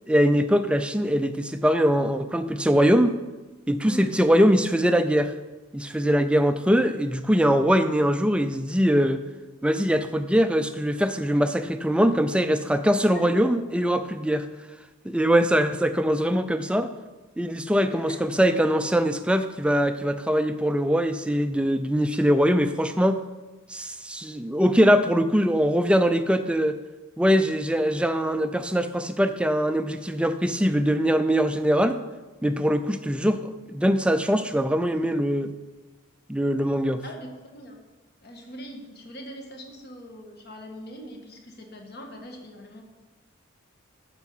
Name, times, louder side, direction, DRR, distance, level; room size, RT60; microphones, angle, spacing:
voice 1, 0.1-3.1 3.7-5.3 5.7-9.2 9.6-14.5 15.0-16.9 17.4-23.2 23.7-26.8 27.2-32.0 32.4-35.5 36.3-37.0, equal, 5° right, 9 dB, 0.4 m, -22 dB
voice 2, 3.8-4.2 13.0-13.3 17.9-18.2 37.0-37.8 38.2-42.8, equal, 50° left, 2 dB, 1.5 m, -42 dB
9.3 x 6.7 x 5.5 m, 1.2 s
head